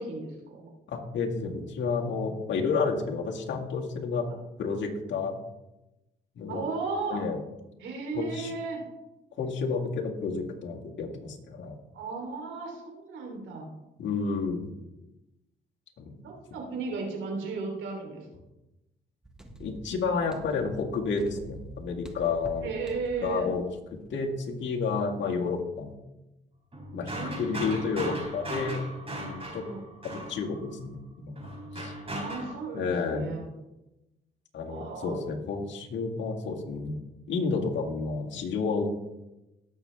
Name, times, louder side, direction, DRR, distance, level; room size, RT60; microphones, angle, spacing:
voice 1, 0.0-0.7 4.3-4.4 6.5-7.2 7.8-8.8 11.9-13.7 16.2-18.3 22.6-23.5 25.2-25.4 27.1-27.6 29.4-29.8 32.0-33.5 34.7-35.2, right 4 dB, 80° right, 1 dB, 3.4 m, -35 dB
voice 2, 0.9-4.3 4.6-5.4 6.4-6.7 7.1-7.4 8.1-8.5 9.4-11.8 14.0-14.7 16.0-16.2 19.6-22.7 23.2-23.6 23.9-25.9 26.9-29.6 30.0-31.5 31.7-31.9 32.7-33.3 34.5-37.0 37.3-38.9, left 4 dB, 65° left, 0 dB, 2.0 m, -31 dB
sound 1, 19.2-25.3 25.5-25.6, right 1 dB, 5° right, 1.5 m, -47 dB
sound 2, 26.7-30.8 31.4-32.6, right 1 dB, 30° right, 4.1 m, -38 dB
18.0 x 6.9 x 3.4 m, 0.97 s
cardioid pair, 90°, 20 cm